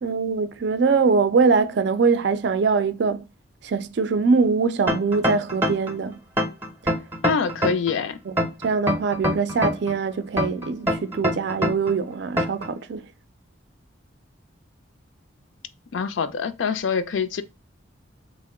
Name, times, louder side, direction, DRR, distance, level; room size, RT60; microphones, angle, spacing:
voice 1, 0.0-3.2 3.6-6.2 8.3-8.4 8.6-13.1, right 4 dB, 60° right, 0.4 m, -22 dB
sound 1, 4.9-5.9 6.4-7.9 8.4-9.9 10.4-11.9 12.4-12.7, equal, 10° right, 0.6 m, -24 dB
voice 2, 7.2-8.2 15.9-17.4, left 5 dB, 75° left, 0.4 m, -25 dB
3.5 x 2.1 x 3.5 m
head